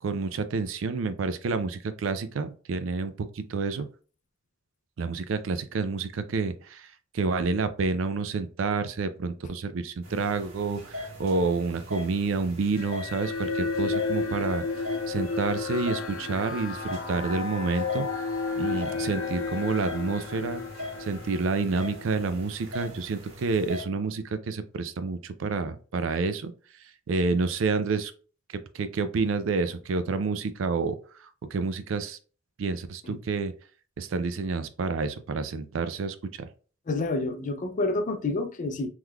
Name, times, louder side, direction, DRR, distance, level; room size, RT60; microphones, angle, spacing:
voice 1, 0.0-3.9 5.0-6.9 7.1-14.6 15.1-18.1 18.6-20.6 21.0-26.5 27.1-28.1 28.7-30.9 31.5-32.2 32.6-33.5 34.0-36.5, right 4 dB, 70° right, 0.4 m, -29 dB
sound 1, 10.0-23.8, left 1 dB, 85° right, 1.5 m, -41 dB
sound 2, 12.7-22.3, left 4 dB, 85° left, 0.6 m, -32 dB
voice 2, 36.9-38.9, left 2 dB, 40° left, 0.4 m, -28 dB
3.7 x 3.1 x 2.3 m
head